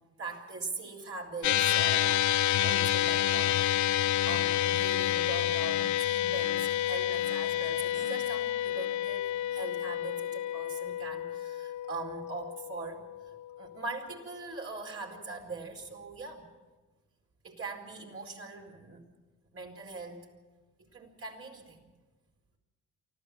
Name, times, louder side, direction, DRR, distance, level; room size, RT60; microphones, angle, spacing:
voice 1, 0.2-2.3 2.6-4.0 4.2-13.0 13.6-16.5 17.4-19.0 19.5-20.2 20.9-21.9, right 3 dB, 50° right, 1 dB, 4.6 m, -41 dB
sound 1, 1.4-14.0, left 12 dB, 70° left, 0.6 m, -29 dB
24.5 x 15.0 x 7.1 m, 1.2 s
cardioid pair, 90°, 30 cm